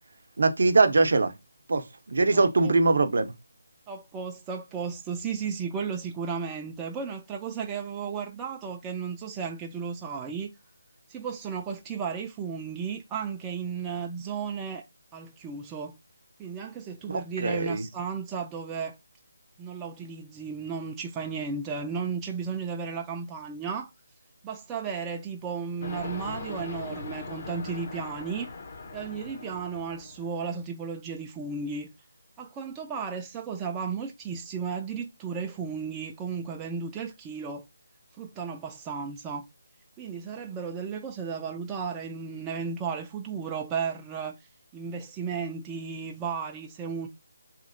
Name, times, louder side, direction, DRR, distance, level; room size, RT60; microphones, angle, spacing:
voice 1, 0.4-1.3 1.7-3.3 17.1-17.8, right 3 dB, 65° right, 0.6 m, -22 dB
voice 2, 2.3-2.7 3.9-10.5 11.1-14.8 15.1-15.9 16.4-19.0 19.6-23.9 24.4-28.5 28.9-31.9 32.4-37.7 38.2-39.5 40.0-44.4 44.7-47.1, right 6 dB, 15° right, 0.3 m, -34 dB
sound 1, 25.8-30.6, left 3 dB, 45° left, 0.6 m, -40 dB
2.9 x 2.7 x 2.5 m
figure-of-eight pair, 165°, 0 cm